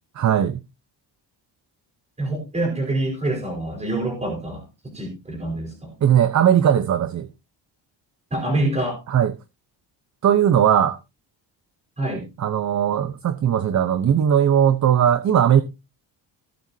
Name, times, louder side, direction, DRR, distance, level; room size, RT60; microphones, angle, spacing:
voice 1, 0.2-0.6 6.0-7.3 9.1-9.3 10.2-11.0 12.4-15.6, right 9 dB, 40° right, 0.9 m, -18 dB
voice 2, 2.2-5.9 8.3-9.0 12.0-12.3, right 2 dB, 15° right, 4.6 m, -26 dB
18.0 x 7.9 x 2.8 m
cardioid pair, 165°, 44 cm